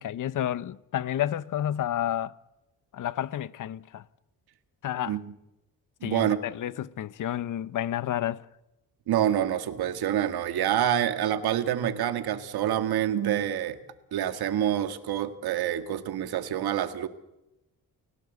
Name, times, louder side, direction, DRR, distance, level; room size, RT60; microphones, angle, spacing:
voice 1, 0.0-2.3 2.9-4.0 4.8-5.2 6.0-8.4, left 11 dB, 55° left, 0.8 m, -30 dB
voice 2, 6.0-6.4 9.1-13.8 14.1-17.1, right 10 dB, 90° right, 1.9 m, -27 dB
29.5 x 17.0 x 8.1 m
cardioid pair, 145°, 37 cm